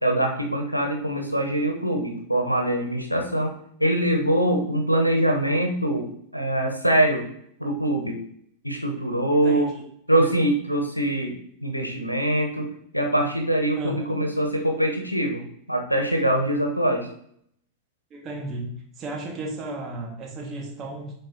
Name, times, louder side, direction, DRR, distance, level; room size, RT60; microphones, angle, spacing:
voice 1, 0.0-3.5 3.8-7.3 7.6-8.2 8.6-9.7 10.1-15.4 15.7-17.1, right 1 dB, 90° left, 3 dB, 1.1 m, -23 dB
voice 2, 9.4-9.8 13.8-14.2 18.1-21.1, right 2 dB, 30° right, 0 dB, 1.7 m, -34 dB
10.5 x 4.0 x 2.8 m, 0.67 s
figure-of-eight pair, 90°, 0 cm